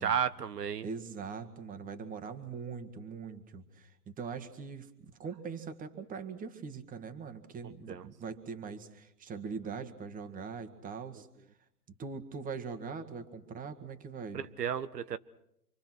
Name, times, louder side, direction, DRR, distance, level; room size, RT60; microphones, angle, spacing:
voice 1, 0.0-0.9 7.9-8.0 14.3-15.2, right 8 dB, 75° right, 13 dB, 1.0 m, -33 dB
voice 2, 0.8-11.3 12.0-14.4, right 5 dB, 15° right, 9 dB, 1.9 m, -42 dB
27.5 x 23.5 x 6.1 m, 0.80 s
figure-of-eight pair, 115°, 48 cm